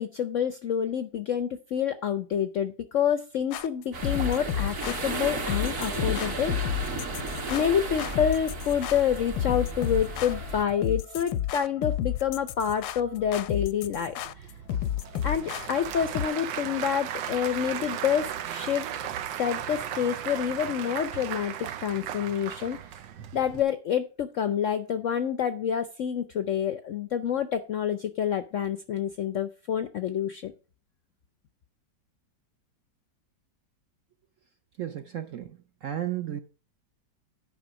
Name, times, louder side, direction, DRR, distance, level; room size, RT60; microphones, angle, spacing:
voice 1, 0.0-6.9 7.5-14.5 15.2-18.9 19.4-22.8 23.3-30.5, left 8 dB, 70° left, 0.7 m, -28 dB
sound 1, 3.5-16.3, left 11 dB, 85° left, 1.4 m, -32 dB
sound 2, 3.9-10.6, right 2 dB, 45° right, 1.8 m, -34 dB
Applause / Crowd, 14.1-23.6, right 10 dB, 90° right, 1.5 m, -36 dB
voice 2, 34.8-35.5 35.8-36.4, right 11 dB, 65° right, 0.8 m, -33 dB
9.7 x 5.2 x 6.1 m
omnidirectional pair, 2.0 m